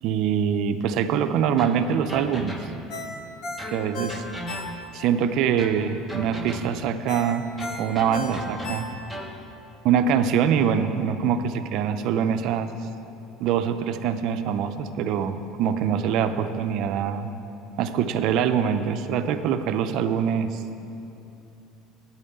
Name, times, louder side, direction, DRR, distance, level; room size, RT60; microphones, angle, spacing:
voice 1, 0.0-2.6 3.7-4.2 4.9-7.5 7.8-8.9 9.8-12.7 13.4-17.3 17.8-20.6, right 8 dB, 55° right, 9 dB, 0.4 m, -24 dB
sound 1, 1.6-3.0 3.6-5.0 5.6-6.9 7.6-9.4, equal, 5° left, 0.8 m, -37 dB
Ringtone, 2.9-5.1 5.5-5.6 7.1-9.3 9.7-9.8, left 3 dB, 50° left, 1.0 m, -36 dB
9.2 x 5.6 x 8.0 m, 2.8 s
cardioid pair, 145°, 0 cm